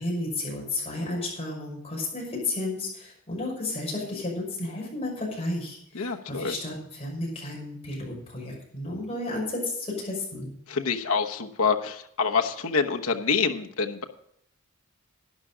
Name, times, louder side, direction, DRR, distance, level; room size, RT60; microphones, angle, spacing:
voice 1, 0.0-10.5, left 2 dB, 30° left, -2 dB, 5.8 m, -32 dB
voice 2, 5.9-6.5 10.7-14.0, left 5 dB, 80° left, 4 dB, 1.1 m, -26 dB
12.0 x 10.0 x 5.0 m, 0.73 s
head